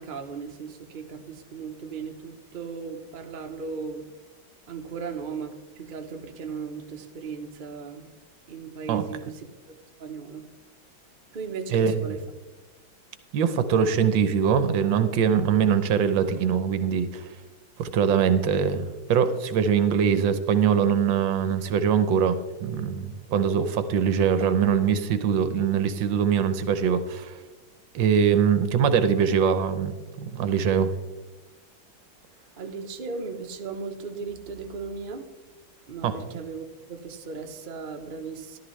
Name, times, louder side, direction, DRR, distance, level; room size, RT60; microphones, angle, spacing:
voice 1, 0.0-4.0 4.7-8.1 8.5-9.5 10.0-10.4 11.3-12.2 32.6-35.3 35.9-38.6, right 5 dB, 45° right, 4 dB, 0.6 m, -37 dB
voice 2, 13.3-17.2 17.8-27.4 27.9-30.9 36.0-36.1, right 7 dB, 75° right, 11 dB, 1.4 m, -23 dB
13.5 x 12.0 x 3.2 m, 1.1 s
omnidirectional pair, 2.2 m